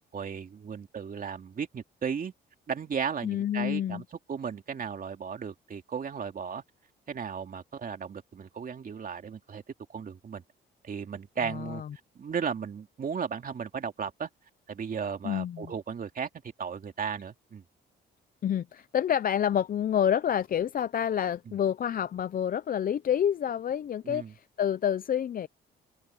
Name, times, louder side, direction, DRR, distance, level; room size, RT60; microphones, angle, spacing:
voice 1, 0.1-2.3 2.7-6.6 7.1-9.6 9.9-10.4 10.8-11.8 12.1-14.3 14.7-16.3 16.6-17.6 21.5-21.6 24.0-24.3, right 6 dB, 45° right, 2.6 m, -35 dB
voice 2, 3.2-4.0 11.4-11.9 15.2-15.7 18.4-25.5, left 9 dB, 45° left, 0.6 m, -28 dB
open air
cardioid pair, 90°, 20 cm